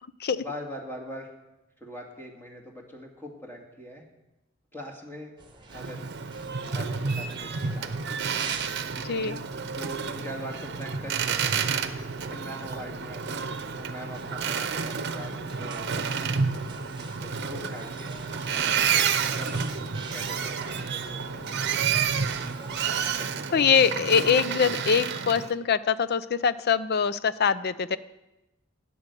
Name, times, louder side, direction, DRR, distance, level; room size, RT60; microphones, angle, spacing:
voice 1, 0.3-1.3 1.8-4.0 4.7-5.3 5.7-6.1 6.7-8.1 9.7-13.4 13.8-16.1 17.0-18.1 19.2-19.7 20.1-21.7 23.2-23.6, equal, 10° left, 0 dB, 2.3 m, -42 dB
sound 1, 5.4-23.2, right 3 dB, 25° right, 1.4 m, -46 dB
Boat Water vehicle, 5.7-25.5, right 6 dB, 60° right, 0.8 m, -30 dB
voice 2, 9.0-9.4 23.5-28.0, left 6 dB, 55° left, 15 dB, 0.5 m, -23 dB
13.0 x 9.3 x 6.9 m, 0.98 s
head